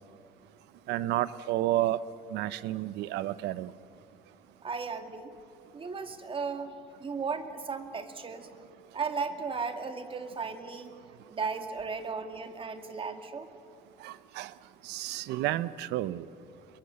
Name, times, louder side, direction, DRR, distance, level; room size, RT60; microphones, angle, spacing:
voice 1, 0.9-2.0 2.3-3.7 14.0-14.5 14.9-16.2, right 15 dB, 85° right, 0.8 m, -31 dB
voice 2, 4.6-5.4 5.7-6.7 7.0-8.5 8.9-10.9 11.3-13.5, right 5 dB, 30° right, 2.1 m, -35 dB
29.5 x 22.5 x 7.0 m
cardioid pair, 110°, 17 cm